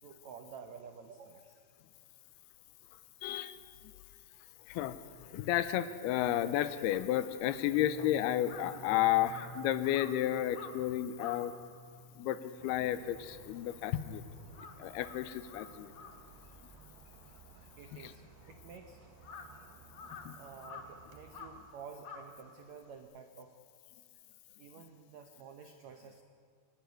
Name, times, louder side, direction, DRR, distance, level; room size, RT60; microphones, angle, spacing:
voice 1, 0.0-1.8 14.5-14.7 16.4-16.5 17.0-19.1 19.5-19.7 20.4-23.5 24.6-26.2, right 6 dB, 90° right, 6 dB, 1.5 m, -51 dB
voice 2, 3.2-3.6 4.7-5.0 5.3-11.5 12.2-14.2 14.8-15.9 18.0-18.1 20.3-20.4, left 12 dB, 80° left, 13 dB, 2.7 m, -32 dB
Crow, 7.6-14.1 14.4-23.0, left 5 dB, 55° left, 1.4 m, -52 dB
sound 1, 7.7-14.6 14.9-15.4 15.8-15.9, right 1 dB, 45° right, 3.1 m, -54 dB
sound 2, 12.6-21.6, right 5 dB, 65° right, 3.0 m, -58 dB
26.0 x 12.0 x 9.3 m, 2.1 s
omnidirectional pair, 4.6 m